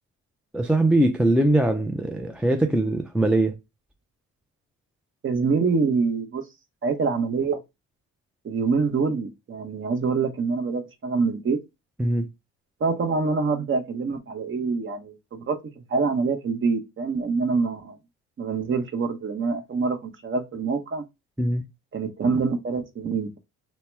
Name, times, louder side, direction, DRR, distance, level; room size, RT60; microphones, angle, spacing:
voice 1, 0.5-3.5 12.0-12.3 21.4-21.6, right 1 dB, 5° right, 0.3 m, -21 dB
voice 2, 5.2-6.4 6.8-7.6 8.4-11.6 12.8-15.6 15.9-18.0 18.4-21.0 21.9-23.4, right 4 dB, 40° right, 0.8 m, -25 dB
2.8 x 2.1 x 3.3 m
supercardioid pair, 80°, 33 cm